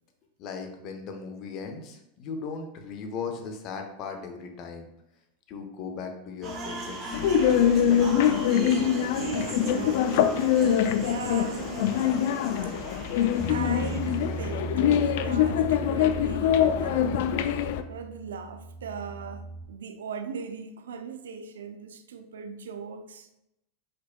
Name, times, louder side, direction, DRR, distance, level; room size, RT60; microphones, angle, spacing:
voice 1, 0.4-4.9 5.5-7.4, left 5 dB, 50° left, 0.8 m, -37 dB
sound 1, 6.4-14.6, right 3 dB, 40° right, 1.1 m, -38 dB
sound 2, 7.1-17.8, left 9 dB, 65° left, 0.3 m, -24 dB
voice 2, 9.2-10.4 11.1-12.4 12.6-12.7 13.5-17.3 17.9-23.3, right 5 dB, 80° right, 0.4 m, -39 dB
Bass guitar, 13.4-19.6, right 2 dB, 60° right, 1.7 m, -37 dB
5.0 x 4.1 x 2.2 m
hypercardioid pair, 95°, 0 cm